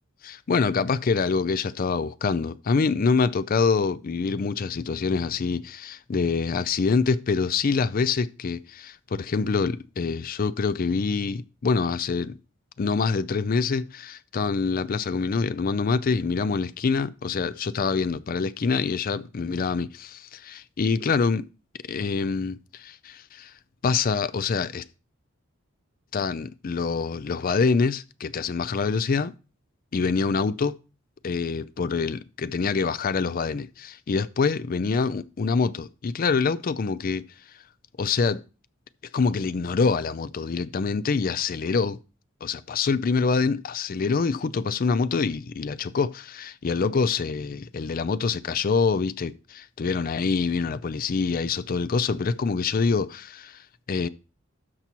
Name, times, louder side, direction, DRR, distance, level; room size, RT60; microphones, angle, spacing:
voice 1, 0.2-12.4 12.8-21.5 21.9-23.5 23.8-24.8 26.1-29.3 29.9-30.8 31.2-37.3 38.0-38.4 39.1-42.0 42.4-53.6 53.9-54.1, left 4 dB, 45° left, 0.4 m, -25 dB
12.5 x 5.7 x 3.0 m
head